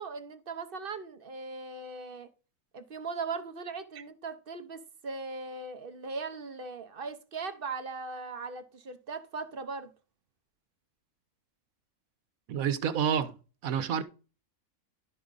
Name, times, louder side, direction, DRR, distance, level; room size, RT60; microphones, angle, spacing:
voice 1, 0.0-2.3 2.7-9.9, right 4 dB, 50° right, 0.8 m, -39 dB
voice 2, 12.5-13.3 13.6-14.0, right 8 dB, 80° right, 1.3 m, -28 dB
12.0 x 4.9 x 3.9 m
omnidirectional pair, 1.4 m